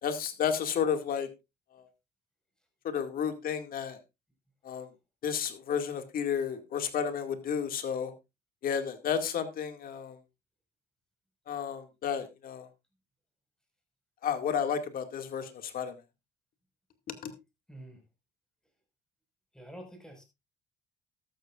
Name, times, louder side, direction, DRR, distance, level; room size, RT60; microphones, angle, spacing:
voice 1, 0.0-1.3 1.7-1.8 2.8-4.0 4.6-4.9 5.2-8.1 8.6-10.2 11.5-12.7 14.2-16.0 17.2-17.3, left 7 dB, 60° left, 2.2 m, -32 dB
voice 2, 17.7-18.0 19.5-20.2, right 1 dB, 5° left, 5.2 m, -47 dB
13.0 x 13.0 x 2.5 m
cardioid pair, 110°, 17 cm